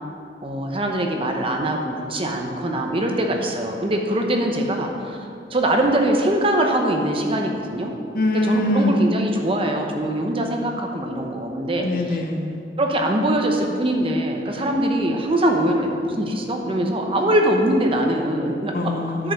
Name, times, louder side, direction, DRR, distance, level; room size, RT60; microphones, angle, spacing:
voice 1, 0.4-5.2 5.5-7.9 8.4-11.9 12.8-18.7 19.2-19.3, right 1 dB, 30° right, 2 dB, 0.9 m, -22 dB
voice 2, 8.1-9.1 11.8-12.6 18.7-19.3, left 1 dB, 55° left, 3 dB, 1.0 m, -22 dB
9.7 x 5.5 x 6.5 m, 2.5 s
head